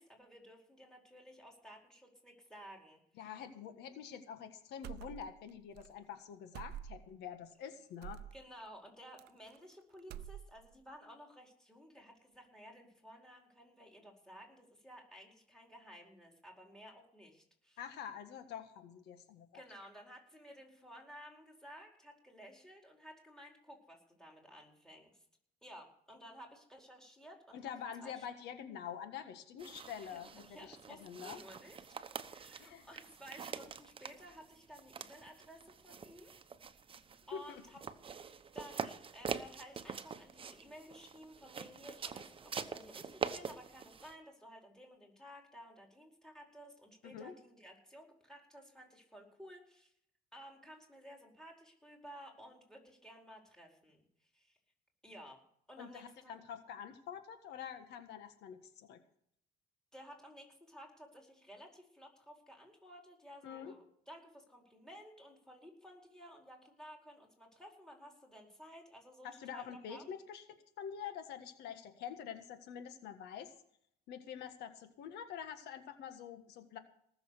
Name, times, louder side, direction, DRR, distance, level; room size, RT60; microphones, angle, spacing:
voice 1, 0.0-3.3 8.3-17.8 19.5-25.2 25.6-27.7 28.0-28.3 30.0-30.2 30.4-31.8 32.3-36.3 37.3-37.8 38.1-49.9 50.3-54.6 55.0-55.4 55.7-56.4 59.9-70.1, equal, 5° left, 1 dB, 4.7 m, -55 dB
voice 2, 3.2-8.2 17.8-19.6 27.5-31.4 32.6-32.9 37.3-37.6 47.0-47.3 55.8-59.0 63.4-63.7 69.2-73.5 74.1-76.8, left 8 dB, 80° left, 8 dB, 1.6 m, -46 dB
sound 1, 4.8-5.5 5.8-5.9 6.5-7.2 8.0-8.4 9.2-9.7 10.0-10.7, right 11 dB, 80° right, 0.6 m, -47 dB
sound 2, 29.6-44.1, right 6 dB, 30° right, 1.0 m, -45 dB
19.0 x 7.0 x 6.6 m, 0.69 s
cardioid pair, 110°, 17 cm